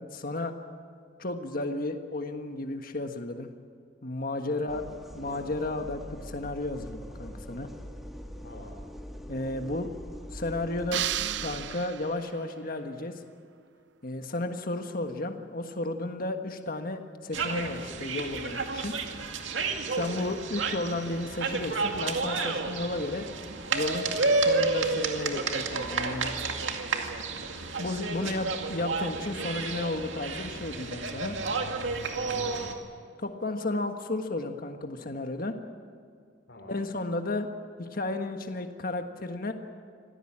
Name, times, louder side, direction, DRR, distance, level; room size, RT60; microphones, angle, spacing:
voice 1, 0.1-0.5 1.2-3.5 4.0-4.8 5.1-7.7 9.3-9.9 10.3-11.0 11.4-13.2 14.0-18.9 19.9-23.2 23.7-24.1 24.4-26.3 27.8-31.3 33.2-35.5 36.7-37.5 37.8-39.5, left 2 dB, 50° left, 5 dB, 1.5 m, -33 dB
voice 2, 4.5-5.4 8.4-8.8 19.9-20.2 32.0-32.7 36.5-36.8, left 1 dB, 75° left, 0 dB, 3.1 m, -48 dB
sound 1, 4.7-11.7, equal, ahead, 1.8 m, -43 dB
sound 2, 10.9-12.5, right 11 dB, 65° right, 0.6 m, -33 dB
sound 3, 17.3-32.7, right 3 dB, 85° right, 2.2 m, -31 dB
25.5 x 17.0 x 8.8 m, 2.2 s
head